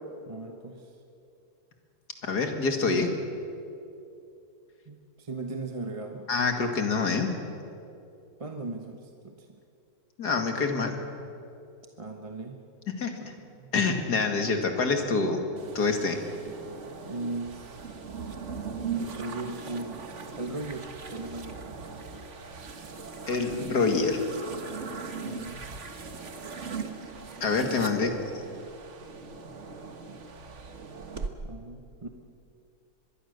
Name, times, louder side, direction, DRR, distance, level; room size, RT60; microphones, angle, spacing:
voice 1, 0.3-0.9 4.9-6.3 8.4-9.5 12.0-12.6 13.2-13.7 17.0-17.9 18.9-20.0 20.3-21.8 25.2-25.7 31.4-32.1, right 2 dB, 25° right, 3 dB, 1.1 m, -38 dB
voice 2, 2.2-3.1 6.3-7.3 10.2-11.0 12.9-13.2 13.7-15.4 15.7-16.2 23.3-24.2 27.4-28.2, left 4 dB, 80° left, 5 dB, 2.6 m, -26 dB
sound 1, 15.6-31.3, right 5 dB, 50° right, 1.6 m, -39 dB
24.0 x 21.5 x 6.6 m, 2.6 s
omnidirectional pair, 1.7 m